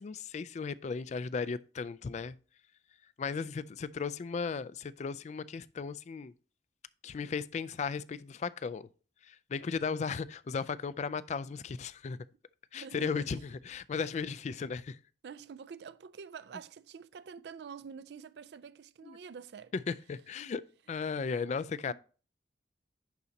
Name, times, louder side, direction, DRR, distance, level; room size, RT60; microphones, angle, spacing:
voice 1, 0.0-2.3 3.2-6.3 7.0-8.9 9.3-12.2 12.7-15.0 19.0-19.2 19.7-21.9, left 5 dB, 40° left, 0.3 m, -36 dB
voice 2, 12.8-13.4 15.2-19.7 21.9-22.0, right 6 dB, 65° right, 0.4 m, -47 dB
10.5 x 4.1 x 2.7 m
head